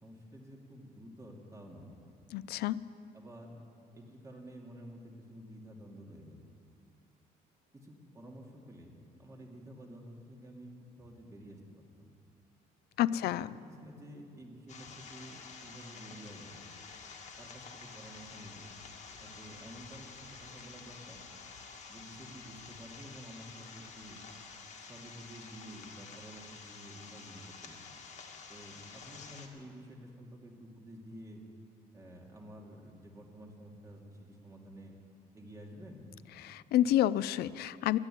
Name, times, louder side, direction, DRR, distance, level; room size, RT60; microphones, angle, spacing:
voice 1, 0.0-2.0 3.1-3.6 3.9-6.4 7.7-10.7 11.0-12.1 13.1-16.7 17.4-18.7 19.2-20.1 20.4-21.2 21.9-24.2 24.9-27.9 28.5-31.4 31.9-35.0 35.3-36.1, equal, 20° right, -1 dB, 2.5 m, -50 dB
voice 2, 2.3-2.8 13.0-13.5 36.4-38.0, left 12 dB, 70° left, 17 dB, 0.4 m, -29 dB
sound 1, 14.7-29.5, left 5 dB, 45° left, 1.8 m, -50 dB
13.0 x 9.7 x 9.8 m, 2.6 s
cardioid pair, 110°, 17 cm